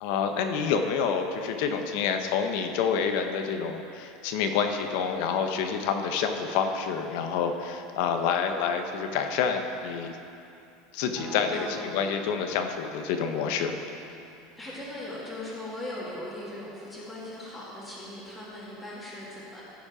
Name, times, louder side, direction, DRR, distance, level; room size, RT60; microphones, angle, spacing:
voice 1, 0.0-10.2 10.9-11.7 11.9-13.7, left 6 dB, 65° left, 6 dB, 0.8 m, -28 dB
sound 1, 11.2-15.3, left 2 dB, 35° left, 2.0 m, -45 dB
voice 2, 14.6-19.6, left 1 dB, 5° left, -9 dB, 1.9 m, -39 dB
15.0 x 5.3 x 4.9 m, 2.7 s
supercardioid pair, 155°, 0 cm